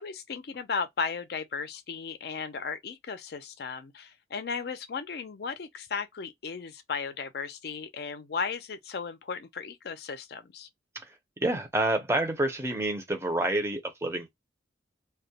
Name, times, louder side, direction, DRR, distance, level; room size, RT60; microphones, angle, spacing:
voice 1, 0.0-10.7, left 5 dB, 60° left, 0.4 m, -35 dB
voice 2, 11.4-14.3, right 1 dB, 15° right, 0.5 m, -28 dB
2.2 x 2.1 x 2.7 m
head